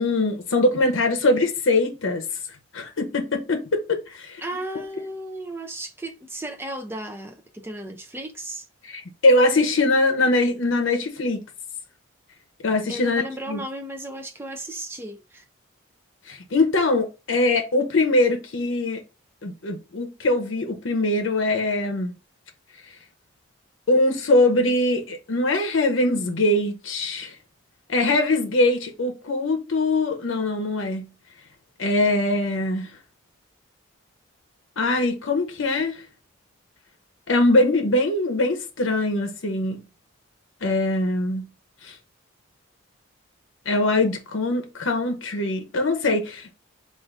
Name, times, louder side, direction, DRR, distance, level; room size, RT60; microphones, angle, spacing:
voice 1, 0.0-2.2 2.7-4.4 8.8-11.4 12.6-13.6 16.3-19.0 19.4-22.1 23.9-27.3 27.9-31.1 31.8-32.9 34.8-36.0 37.3-39.8 40.6-41.5 41.8-41.9 43.7-46.5, left 2 dB, 65° left, 0.7 m, -22 dB
voice 2, 4.4-8.7 12.9-15.4, right 1 dB, 10° right, 0.4 m, -35 dB
3.7 x 2.5 x 3.4 m
head